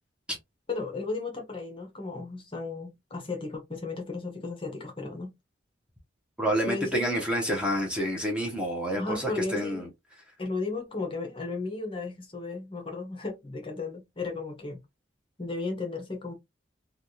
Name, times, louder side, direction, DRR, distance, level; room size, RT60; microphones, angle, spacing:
voice 1, 0.7-5.3 6.7-7.2 9.0-9.9 10.4-14.8 15.4-16.3, left 3 dB, 25° left, 0.7 m, -34 dB
voice 2, 6.4-9.9, equal, 5° right, 0.7 m, -28 dB
3.3 x 2.3 x 2.7 m
head